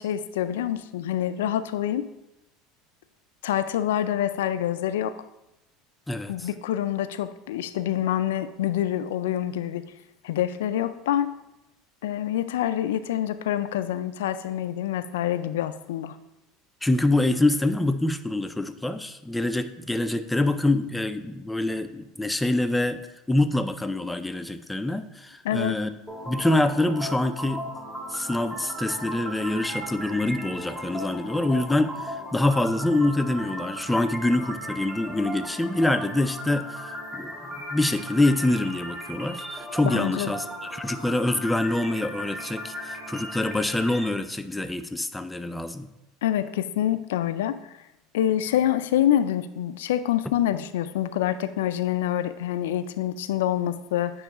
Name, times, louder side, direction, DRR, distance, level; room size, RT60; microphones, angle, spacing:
voice 1, 0.0-2.1 3.4-5.1 6.3-9.8 10.2-11.3 12.0-16.2 25.4-25.8 39.8-40.3 46.2-47.6 48.1-54.2, left 11 dB, 90° left, 12 dB, 0.3 m, -26 dB
voice 2, 6.1-6.5 16.8-23.0 23.3-25.9 26.3-27.7 28.1-37.3 37.7-40.5 40.7-45.9, left 2 dB, 5° left, 9 dB, 0.4 m, -25 dB
sound 1, 26.1-44.1, equal, 15° right, 1.7 m, -37 dB
9.2 x 3.1 x 3.6 m, 0.92 s
supercardioid pair, 105°, 0 cm